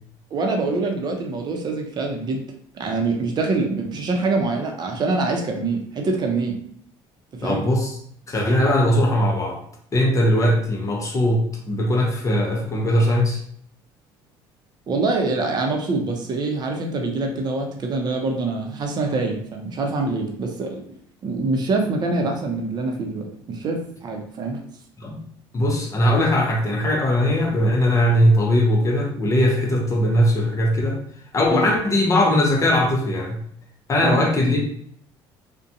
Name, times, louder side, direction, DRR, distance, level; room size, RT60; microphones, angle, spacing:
voice 1, 0.3-2.4 2.8-6.6 7.4-7.6 14.9-20.8 21.2-24.6 31.5-31.7 34.0-34.2, right 3 dB, 40° right, 3 dB, 0.6 m, -25 dB
voice 2, 7.4-8.0 8.3-9.6 9.9-13.4 25.0-25.2 25.5-31.0 31.3-33.4 33.9-34.6, left 1 dB, 30° left, 0 dB, 0.6 m, -20 dB
2.5 x 2.2 x 2.7 m, 0.64 s
supercardioid pair, 95°, 10 cm